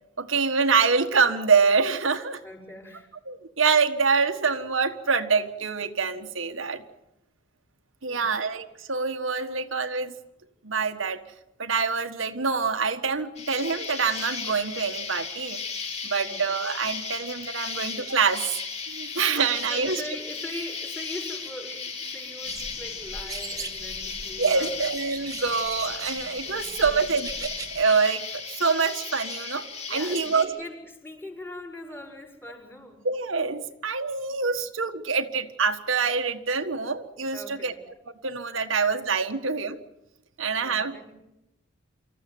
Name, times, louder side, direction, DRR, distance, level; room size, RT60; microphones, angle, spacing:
voice 1, 0.2-2.4 3.3-6.8 8.0-10.1 10.6-11.2 11.6-15.6 16.0-18.5 18.9-20.0 24.4-30.5 33.0-37.7 38.2-39.8 40.4-41.1, right 5 dB, 85° right, 7 dB, 1.6 m, -25 dB
voice 2, 2.4-3.1 8.1-8.4 16.1-16.5 19.7-24.8 26.4-27.1 29.9-33.0 34.3-34.6 37.3-37.8 40.6-41.1, left 1 dB, 10° left, 1 dB, 5.6 m, -41 dB
Insect, 13.4-30.4, left 5 dB, 35° left, 5.6 m, -36 dB
sound 1, 22.4-27.8, right 4 dB, 20° right, 1.6 m, -40 dB
26.0 x 15.0 x 9.4 m, 0.91 s
head